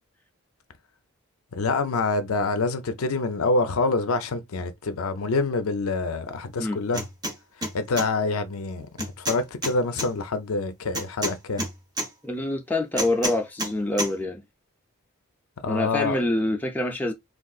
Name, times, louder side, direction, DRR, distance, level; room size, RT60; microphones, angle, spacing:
voice 1, 1.5-7.0 7.7-8.9 9.2-11.7 15.6-16.2, left 3 dB, 65° left, 0.5 m, -26 dB
sound 1, 6.9-7.3 7.6-8.1 9.0-10.1 10.9-12.1 13.0-13.7 14.0-14.1, right 1 dB, 20° right, 0.8 m, -29 dB
voice 2, 12.2-14.4 15.7-17.1, left 1 dB, 10° left, 0.4 m, -26 dB
3.7 x 2.4 x 2.3 m
head